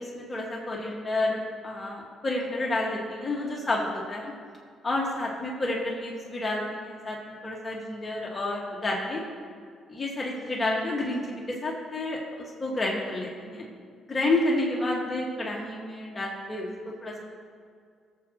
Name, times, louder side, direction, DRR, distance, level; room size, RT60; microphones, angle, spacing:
voice 1, 0.0-4.3 4.8-9.2 9.9-13.6 14.1-16.7 17.0-17.2, left 2 dB, 25° left, -3 dB, 2.0 m, -30 dB
20.5 x 7.7 x 3.1 m, 2.1 s
cardioid pair, 85°, 0 cm